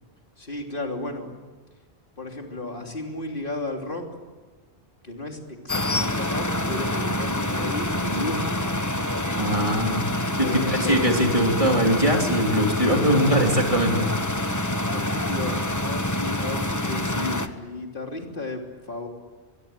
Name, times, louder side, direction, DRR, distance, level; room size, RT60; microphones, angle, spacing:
voice 1, 0.4-1.3 2.2-4.0 5.0-9.0 10.4-11.0 14.9-19.1, left 2 dB, 50° left, 2 dB, 3.4 m, -33 dB
sound 1, 5.7-17.5, left 1 dB, 15° left, 1.1 m, -27 dB
voice 2, 9.4-10.0 10.4-14.1, equal, 30° right, 1 dB, 3.3 m, -21 dB
23.0 x 23.0 x 9.0 m, 1.4 s
omnidirectional pair, 1.1 m